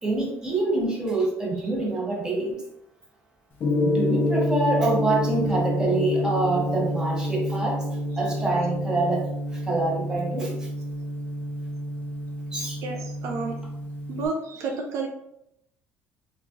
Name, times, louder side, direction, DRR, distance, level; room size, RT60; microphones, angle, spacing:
voice 1, 0.0-2.6 3.8-7.8 8.2-10.7 12.5-12.8, right 2 dB, 15° right, -3 dB, 0.9 m, -26 dB
Gong, 3.6-14.3, left 1 dB, 40° left, 0.4 m, -28 dB
voice 2, 12.6-13.6 14.1-15.1, right 3 dB, 65° right, 2 dB, 0.4 m, -32 dB
3.1 x 2.3 x 2.4 m, 0.78 s
cardioid pair, 125°, 5 cm